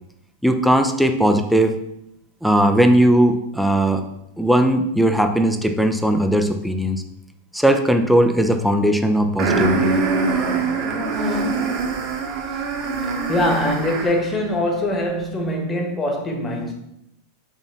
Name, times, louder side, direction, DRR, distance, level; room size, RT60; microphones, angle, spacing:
voice 1, 0.4-1.7 2.4-4.0 4.4-7.0 7.5-10.0, right 1 dB, ahead, 0.7 m, -18 dB
sound 1, 9.4-14.3, right 3 dB, 40° right, 1.3 m, -23 dB
voice 2, 13.0-16.7, left 1 dB, 20° left, 1.5 m, -23 dB
5.9 x 4.0 x 5.6 m
figure-of-eight pair, 90°, 0 cm